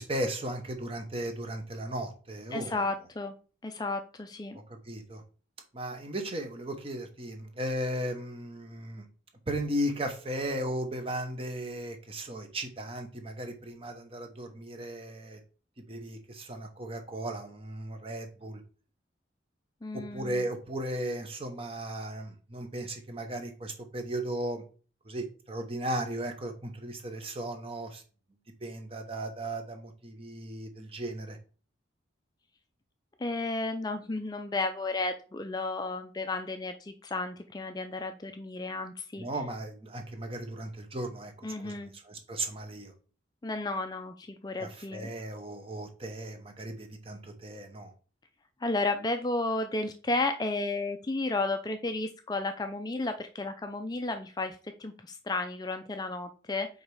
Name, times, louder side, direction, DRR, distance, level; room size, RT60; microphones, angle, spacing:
voice 1, 0.0-2.8 4.5-5.2 5.7-9.1 9.5-15.4 15.8-18.6 19.9-24.6 25.0-28.0 28.6-31.4 39.2-42.9 44.6-47.9, right 1 dB, 30° right, 0.9 m, -36 dB
voice 2, 2.5-3.3 3.6-4.6 19.8-20.4 33.2-39.2 41.4-41.9 43.4-45.1 48.6-56.7, left 2 dB, 20° left, 0.4 m, -33 dB
5.1 x 3.9 x 4.8 m
head